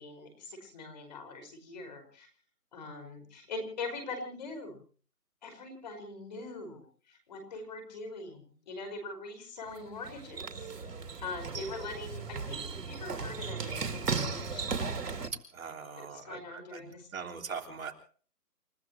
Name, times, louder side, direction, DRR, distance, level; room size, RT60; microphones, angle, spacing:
voice 1, 0.0-2.3 2.7-4.8 5.4-10.7 11.2-14.7 16.1-17.4, left 3 dB, 30° left, 5 dB, 5.1 m, -42 dB
sound 1, 9.7-15.3, right 4 dB, 90° right, 2.8 m, -36 dB
voice 2, 15.5-17.9, right 6 dB, 60° right, 3 dB, 3.5 m, -42 dB
29.0 x 16.5 x 3.0 m, 0.42 s
hypercardioid pair, 175°, 47 cm